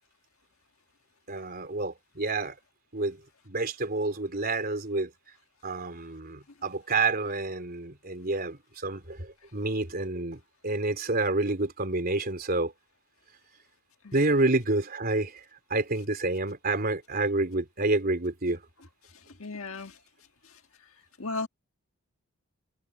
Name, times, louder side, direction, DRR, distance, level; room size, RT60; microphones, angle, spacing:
voice 1, 1.3-2.6 2.9-3.2 3.5-5.1 5.6-10.4 10.6-12.7 14.1-15.3 15.7-18.6, right 2 dB, 45° right, 3.8 m, -28 dB
voice 2, 19.4-19.9 21.2-21.5, left 3 dB, 70° left, 1.7 m, -34 dB
head